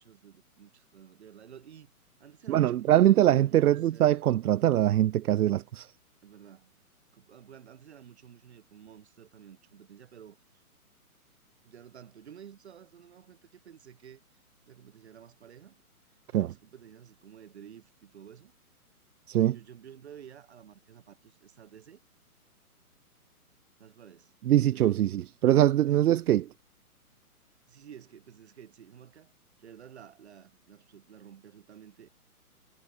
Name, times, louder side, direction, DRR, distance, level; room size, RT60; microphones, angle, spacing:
voice 1, 0.0-1.9 2.2-4.1 6.2-6.8 7.1-10.6 11.6-14.4 14.7-15.8 16.3-18.5 19.5-22.0 23.8-24.4 24.7-25.0 25.8-26.2 27.7-29.3 29.6-32.1, right 9 dB, 45° right, 7.1 m, -52 dB
voice 2, 2.5-5.9 16.3-16.5 19.3-19.6 24.5-26.4, right 12 dB, 80° right, 0.5 m, -23 dB
hypercardioid pair, 175°, 45 cm